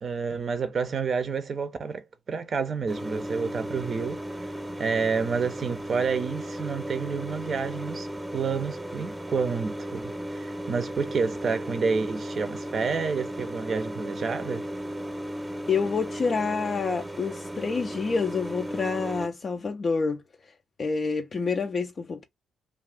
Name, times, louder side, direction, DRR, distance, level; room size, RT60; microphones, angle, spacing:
voice 1, 0.0-4.5 4.8-14.6, right 5 dB, 50° right, 0.5 m, -29 dB
sound 1, 2.9-19.3, right 1 dB, 10° right, 0.7 m, -35 dB
voice 2, 15.7-20.2 20.8-22.2, left 4 dB, 45° left, 0.4 m, -28 dB
2.4 x 2.4 x 3.4 m
hypercardioid pair, 45°, 0 cm